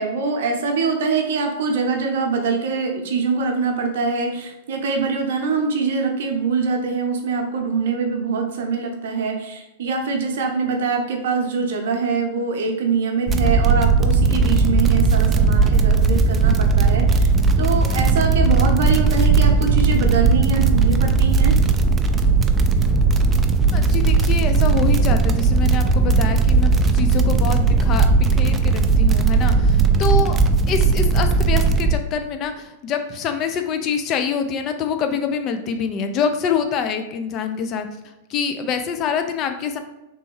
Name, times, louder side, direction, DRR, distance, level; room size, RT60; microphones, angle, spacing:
voice 1, 0.0-21.5, right 4 dB, 70° right, 3 dB, 0.7 m, -23 dB
sound 1, 13.3-32.0, right 4 dB, 25° right, 0.3 m, -17 dB
voice 2, 23.7-30.4 30.7-37.9 38.3-39.8, left 6 dB, 40° left, 7 dB, 0.5 m, -25 dB
3.4 x 3.0 x 3.0 m, 0.94 s
hypercardioid pair, 100°, 0 cm